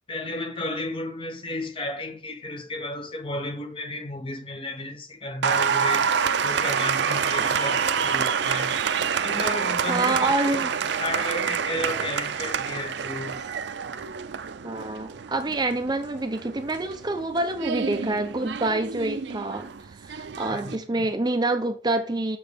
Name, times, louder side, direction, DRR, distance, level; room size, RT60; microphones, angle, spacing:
voice 1, 0.1-6.1 6.4-8.8 9.2-10.7 11.0-13.4 20.5-21.1, left 2 dB, 30° left, 0.8 m, -33 dB
Applause, 5.4-20.8, right 6 dB, 65° right, 0.5 m, -27 dB
voice 2, 9.9-10.7 14.6-22.4, right 2 dB, 20° right, 0.6 m, -27 dB
6.6 x 6.0 x 3.5 m
head